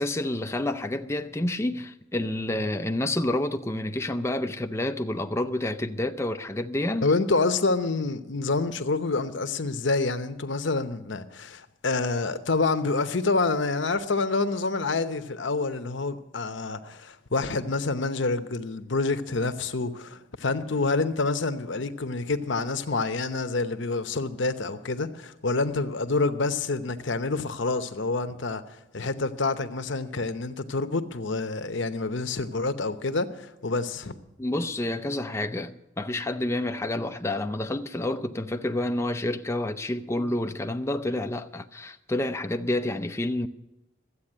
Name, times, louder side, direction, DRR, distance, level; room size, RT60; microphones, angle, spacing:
voice 1, 0.0-7.1 34.4-43.5, left 1 dB, 15° left, 0.5 m, -29 dB
voice 2, 7.0-28.6 28.9-34.2, left 3 dB, 60° left, 0.9 m, -27 dB
13.5 x 8.4 x 9.8 m
head